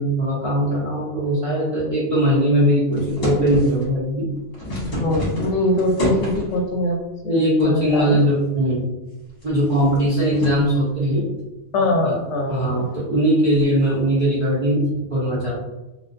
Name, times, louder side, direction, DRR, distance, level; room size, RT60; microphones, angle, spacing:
voice 1, 0.0-4.3 7.2-8.9 9.4-11.3 12.0-12.2 12.5-15.6, equal, 50° right, -8 dB, 0.4 m, -20 dB
open letter, 2.9-3.9 4.4-6.6 7.6-8.1 8.5-8.6 9.2-10.7 13.5-13.8, equal, 55° left, 1.1 m, -28 dB
voice 2, 5.0-7.0 7.2-8.2 11.7-12.9, left 1 dB, 80° left, 1 dB, 0.9 m, -22 dB
2.3 x 2.2 x 2.5 m, 1.0 s
omnidirectional pair, 1.2 m